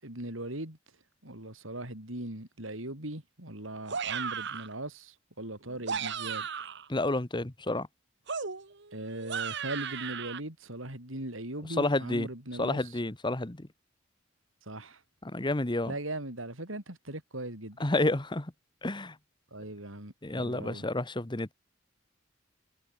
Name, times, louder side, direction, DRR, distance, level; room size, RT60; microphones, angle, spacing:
voice 1, 0.0-0.8 1.2-6.5 8.9-12.8 14.7-15.0 15.9-17.8 19.5-20.8, right 1 dB, 90° right, 7.3 m, -39 dB
sound 1, 3.9-4.7 5.7-6.9 8.3-10.4, right 6 dB, 65° right, 1.8 m, -35 dB
voice 2, 6.9-7.9 11.7-12.3 12.6-13.7 15.2-15.9 17.8-18.5 18.8-19.2 20.2-21.5, left 2 dB, 25° left, 1.3 m, -30 dB
head